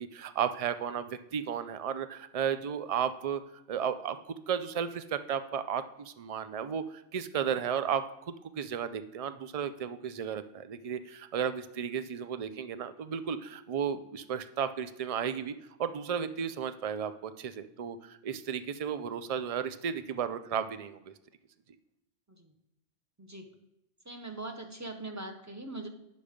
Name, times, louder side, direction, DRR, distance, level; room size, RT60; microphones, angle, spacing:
voice 1, 0.0-3.4 3.7-15.5 15.8-21.1, right 8 dB, 55° right, 11 dB, 0.4 m, -34 dB
voice 2, 23.2-23.5 24.0-25.9, right 2 dB, 15° right, 5 dB, 0.9 m, -41 dB
8.6 x 6.5 x 5.1 m, 0.88 s
omnidirectional pair, 1.3 m